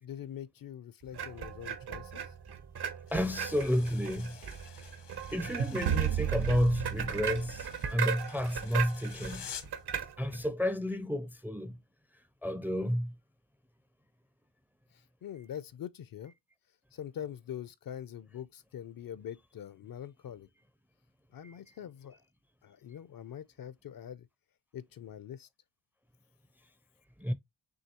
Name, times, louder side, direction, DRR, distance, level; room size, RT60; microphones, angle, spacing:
voice 1, 0.0-2.2 15.2-16.3 16.9-20.5 21.3-22.2 22.6-24.3 24.7-25.5, left 9 dB, 55° left, 0.5 m, -43 dB
sound 1, 1.1-10.5, right 7 dB, 65° right, 1.0 m, -38 dB
sound 2, 3.1-9.8, left 8 dB, 75° left, 1.0 m, -50 dB
voice 2, 3.1-4.4 5.3-9.5 10.2-11.8 12.4-13.1 21.4-21.5 27.2-27.3, equal, 5° right, 0.4 m, -31 dB
sound 3, 5.8-8.4, right 9 dB, 85° right, 0.6 m, -33 dB
6.3 x 2.7 x 2.9 m
cardioid pair, 85°, 42 cm